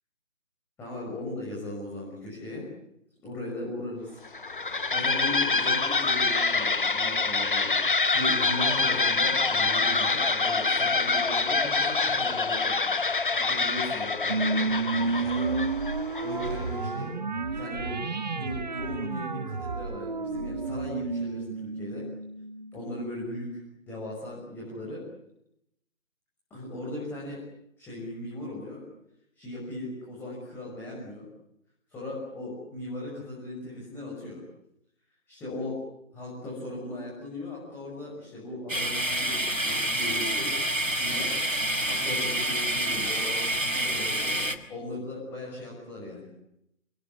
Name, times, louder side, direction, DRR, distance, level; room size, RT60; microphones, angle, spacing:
voice 1, 0.8-2.7 3.2-4.2 4.9-12.9 13.3-15.6 16.2-17.1 17.5-18.0 18.3-22.0 22.7-23.6 23.9-25.0 26.5-27.4 27.8-28.8 29.3-31.2 31.9-34.4 35.3-35.8 36.1-40.5 41.0-41.3 42.0-46.3, left 1 dB, 5° left, -5 dB, 6.4 m, -38 dB
sound 1, 4.2-16.8, left 4 dB, 40° left, 1.0 m, -26 dB
sound 2, 14.3-23.0, right 4 dB, 35° right, 1.7 m, -31 dB
sound 3, 38.7-44.6, right 1 dB, 90° right, 5.7 m, -28 dB
28.5 x 20.0 x 9.7 m, 0.80 s
figure-of-eight pair, 155°, 39 cm